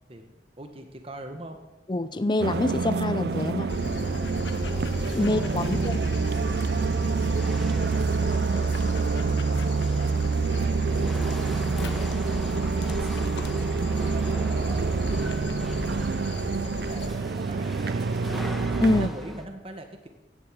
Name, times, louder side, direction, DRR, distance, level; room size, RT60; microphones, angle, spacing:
voice 1, 0.1-1.6 4.5-5.9 7.0-8.6 8.9-11.8 12.4-18.5 19.0-20.1, right 1 dB, 35° right, 5 dB, 1.5 m, -43 dB
voice 2, 1.9-3.7 5.1-6.0 18.8-19.1, left 2 dB, 25° left, 13 dB, 0.5 m, -25 dB
sound 1, 2.4-19.1, right 4 dB, 60° right, 0.4 m, -27 dB
Chatter / Hiss / Rattle, 2.8-19.5, equal, ahead, 1.2 m, -42 dB
Dog, 3.7-17.1, left 1 dB, 90° left, 1.5 m, -35 dB
16.0 x 8.1 x 8.8 m, 1.0 s
head